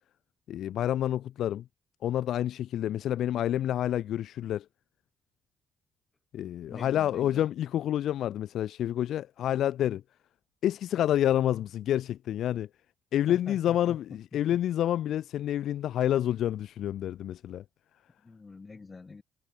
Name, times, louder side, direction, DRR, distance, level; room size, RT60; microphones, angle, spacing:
voice 1, 0.5-1.6 2.0-4.7 6.3-10.0 10.6-12.7 13.1-17.6, left 11 dB, 75° left, 0.4 m, -28 dB
voice 2, 6.7-7.5 13.3-14.0 14.3-14.4 18.2-19.2, left 4 dB, 30° left, 5.8 m, -45 dB
cardioid pair, 90°, 0 cm